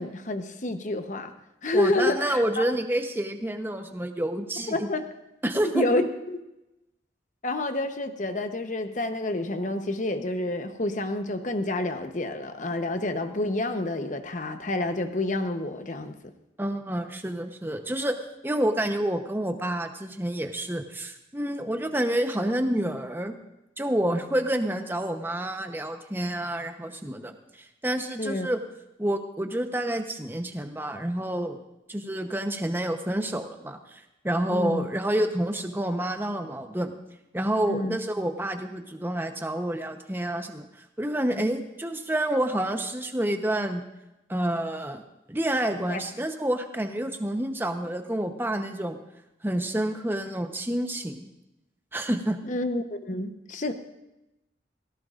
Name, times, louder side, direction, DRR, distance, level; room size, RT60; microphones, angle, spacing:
voice 1, 0.0-1.3 1.6-2.4 4.7-5.1 5.7-6.4 7.4-16.1 28.2-28.5 34.5-34.9 37.7-38.0 41.3-41.4 45.9-46.1 52.4-53.7, left 2 dB, 45° left, 8 dB, 0.9 m, -28 dB
voice 2, 1.7-4.9 5.4-6.0 16.6-18.1 18.4-23.3 23.8-28.6 29.0-31.6 31.9-36.9 37.3-40.7 41.0-43.8 44.3-45.0 45.3-49.0 49.4-51.3 51.9-52.4, right 1 dB, 10° right, 6 dB, 0.9 m, -28 dB
17.5 x 17.0 x 2.5 m, 0.92 s
head